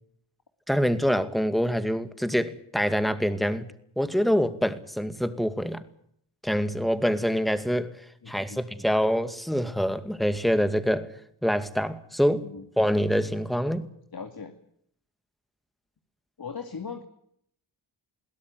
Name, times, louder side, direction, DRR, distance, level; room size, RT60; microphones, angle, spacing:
voice 1, 0.7-3.7 4.0-5.8 6.4-8.0 8.3-11.1 11.4-12.4 12.8-13.9, equal, ahead, 2.3 m, -25 dB
voice 2, 8.2-8.6 12.3-12.7 14.1-14.5 16.4-17.0, left 5 dB, 45° left, 2.4 m, -39 dB
22.0 x 17.0 x 9.5 m
cardioid pair, 60°, 49 cm